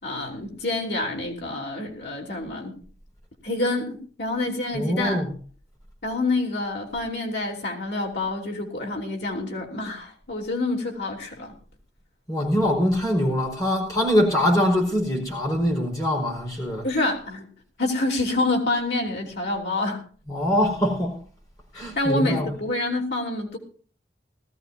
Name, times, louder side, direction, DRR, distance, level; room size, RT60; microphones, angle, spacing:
voice 1, 0.0-2.8 3.4-5.2 6.0-11.5 16.8-17.5 17.8-20.0 21.7-23.6, left 2 dB, 75° left, 3.3 m, -27 dB
voice 2, 4.7-5.3 12.3-16.9 20.3-21.2 21.7-22.5, equal, 20° left, 5.2 m, -23 dB
20.5 x 14.0 x 2.8 m
head